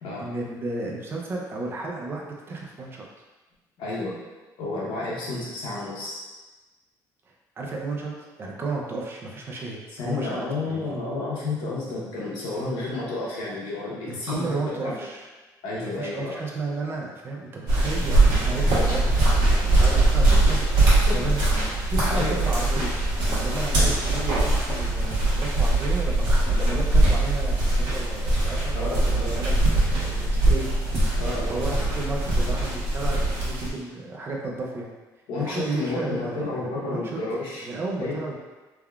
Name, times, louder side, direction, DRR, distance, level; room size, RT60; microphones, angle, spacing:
voice 1, 0.2-3.0 7.3-8.1 8.4-10.4 10.7-10.9 14.1-15.3 15.8-19.2 19.5-20.7 21.1-22.9 23.4-31.1 31.5-34.9 35.4-37.2 37.6-38.3, right 3 dB, 30° right, -2 dB, 0.4 m, -33 dB
voice 2, 3.8-4.2 4.6-6.2 10.0-14.5 14.8-15.0 15.6-16.3 20.3-20.4 21.1-21.2 22.1-22.4 23.8-23.9 28.8-29.5 31.2-31.9 35.3-37.6 38.0-38.2, left 2 dB, 85° left, -6 dB, 0.9 m, -31 dB
sound 1, 17.7-33.7, right 2 dB, 70° right, 1.1 m, -21 dB
3.3 x 2.3 x 2.3 m, 1.2 s
cardioid pair, 150°, 8 cm